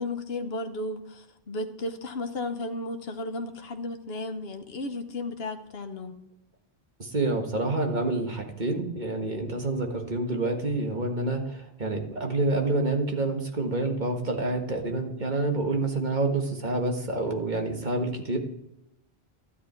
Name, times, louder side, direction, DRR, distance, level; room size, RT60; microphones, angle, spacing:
voice 1, 0.0-6.2, left 2 dB, 70° left, 6 dB, 1.3 m, -34 dB
voice 2, 7.0-18.4, right 2 dB, 45° right, 3 dB, 1.7 m, -28 dB
12.5 x 10.0 x 4.4 m, 0.84 s
omnidirectional pair, 1.1 m